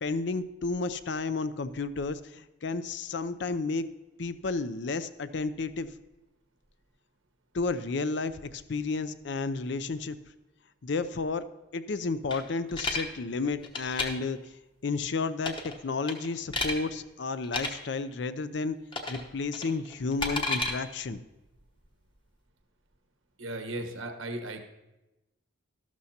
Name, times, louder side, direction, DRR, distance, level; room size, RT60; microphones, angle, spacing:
voice 1, 0.0-3.9 4.2-5.9 7.5-10.2 10.8-11.4 11.7-14.6 14.8-18.8 19.1-21.2, left 4 dB, 60° left, 13 dB, 0.5 m, -32 dB
sound 1, 12.3-13.0 13.6-14.1 15.4-15.8 16.1-16.8 17.4-17.7 18.9-19.2 19.5-20.7, left 2 dB, 25° left, 1.0 m, -31 dB
voice 2, 23.4-24.6, right 1 dB, 85° right, 6 dB, 1.2 m, -36 dB
12.5 x 12.5 x 2.8 m, 1.0 s
head